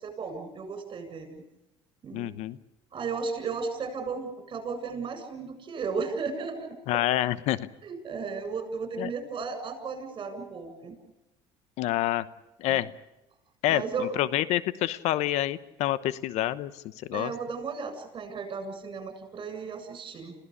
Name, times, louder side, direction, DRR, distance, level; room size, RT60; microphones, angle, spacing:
voice 1, 0.0-1.4 2.0-2.3 2.9-6.7 7.8-11.0 12.7-12.8 13.7-14.1 17.1-20.4, right 5 dB, 40° right, 8 dB, 7.7 m, -35 dB
voice 2, 2.1-2.6 6.9-7.7 9.0-9.1 11.8-12.3 12.6-12.9 13.6-17.3, left 14 dB, 70° left, 16 dB, 1.0 m, -28 dB
27.0 x 16.5 x 8.6 m, 0.95 s
supercardioid pair, 90°, 12 cm